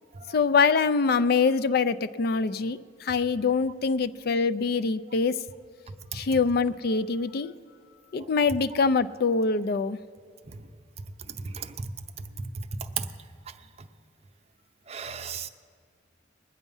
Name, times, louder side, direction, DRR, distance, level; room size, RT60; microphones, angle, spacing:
voice 1, 0.3-5.4 6.1-7.5 8.1-10.0, left 4 dB, 55° left, 0.4 m, -24 dB
voice 2, 5.9-6.2 8.2-8.3 10.5-10.7 11.3-11.9 12.5-13.1 13.8-13.9 14.9-15.5, right 5 dB, 35° right, 0.6 m, -35 dB
20.5 x 8.1 x 5.5 m
head